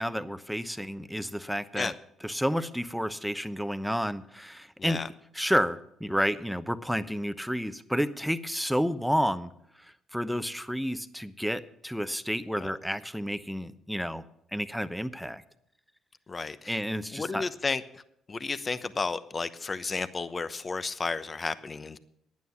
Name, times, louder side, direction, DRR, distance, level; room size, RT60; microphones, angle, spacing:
voice 1, 0.0-1.9 2.2-5.0 5.3-9.5 9.8-14.2 14.5-15.4 16.7-17.5, equal, ahead, 13 dB, 0.9 m, -30 dB
voice 2, 16.3-16.8 17.1-18.0 18.3-22.0, left 4 dB, 35° left, 13 dB, 0.9 m, -32 dB
11.0 x 9.3 x 7.1 m, 0.73 s
hypercardioid pair, 50°, 0 cm